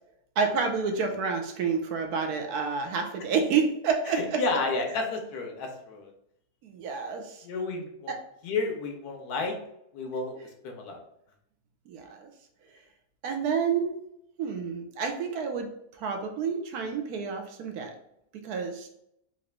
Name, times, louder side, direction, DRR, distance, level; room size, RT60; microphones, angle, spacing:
voice 1, 0.4-4.4 6.6-7.4 8.1-8.2 11.9-12.3 13.2-13.9 14.4-15.7 16.0-17.9 18.4-18.9, right 5 dB, 90° right, 4 dB, 1.2 m, -29 dB
voice 2, 4.1-6.1 7.4-8.1 8.4-9.6 9.9-10.4 10.6-11.0, left 3 dB, 90° left, 3 dB, 1.3 m, -31 dB
4.0 x 2.5 x 3.3 m, 0.78 s
omnidirectional pair, 1.6 m